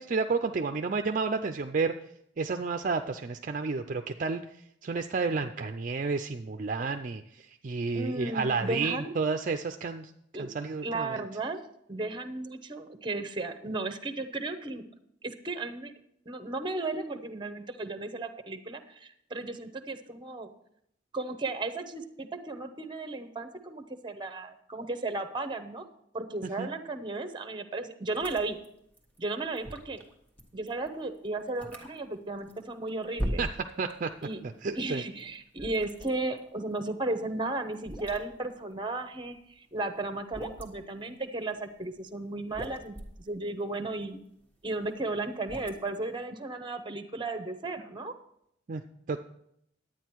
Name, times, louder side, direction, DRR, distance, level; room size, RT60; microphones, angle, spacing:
voice 1, 0.0-2.0 2.4-4.4 4.8-7.2 7.6-10.1 10.4-11.2 26.6-26.7 33.4-33.5 33.8-34.1 34.6-35.0 48.7-48.8 49.1-49.2, right 4 dB, 45° right, 7 dB, 0.4 m, -30 dB
voice 2, 7.9-9.1 10.3-10.5 10.8-14.8 15.2-15.9 16.3-20.5 21.1-25.8 26.1-28.6 29.2-30.0 30.5-33.4 34.2-34.4 34.8-44.2 44.6-48.1, right 2 dB, 25° right, 9 dB, 0.8 m, -35 dB
sound 1, 28.1-34.3 34.6-39.6 40.0-40.9 41.5-42.0 42.3-46.1, equal, 10° left, 1.4 m, -40 dB
11.0 x 9.0 x 4.6 m, 0.75 s
head